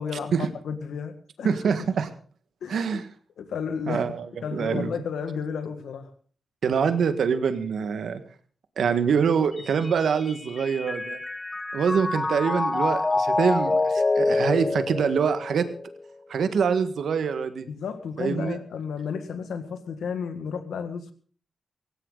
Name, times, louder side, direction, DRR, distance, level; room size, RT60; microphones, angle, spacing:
voice 1, 0.0-1.5 2.6-3.0 3.4-4.0 4.4-6.1 17.7-21.1, left 6 dB, 85° left, 9 dB, 1.8 m, -32 dB
voice 2, 1.4-2.1 2.7-3.0 3.9-4.3 4.5-4.9 6.6-8.2 8.8-11.2 11.7-15.7 16.3-17.7 18.2-18.6, right 6 dB, 80° right, 10 dB, 1.7 m, -25 dB
Mallet percussion, 9.6-16.0, left 2 dB, 30° left, 0.9 m, -27 dB
17.0 x 16.5 x 4.0 m, 0.43 s
cardioid pair, 60°, 0 cm